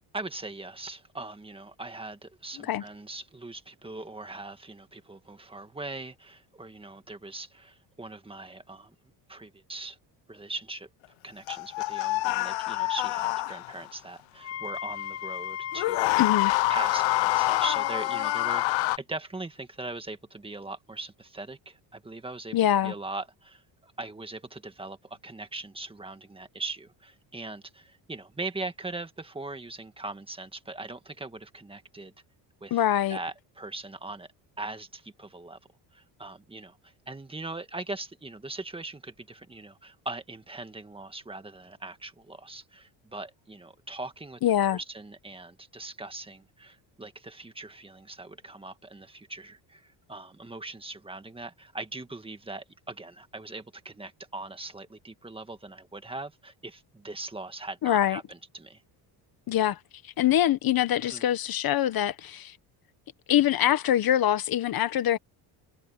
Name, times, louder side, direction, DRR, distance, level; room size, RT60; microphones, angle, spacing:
voice 1, 0.1-8.9 9.3-10.0 10.3-10.9 11.2-16.2 16.7-22.6 22.8-32.1 32.6-32.8 33.1-34.3 34.6-35.6 35.9-44.4 44.7-58.8 61.0-61.2, right 2 dB, 10° right, 1.8 m, -40 dB
sound 1, 11.5-13.9 15.7-19.0, left 19 dB, 80° left, 0.9 m, -26 dB
Wind instrument woodwind instrument, 14.4-18.9, left 10 dB, 35° left, 0.7 m, -36 dB
voice 2, 16.2-16.5 22.5-22.9 32.7-33.2 44.4-44.8 57.8-58.2 59.5-59.8 60.0-62.6 63.3-65.2, left 11 dB, 50° left, 1.3 m, -24 dB
cardioid pair, 130°, 45 cm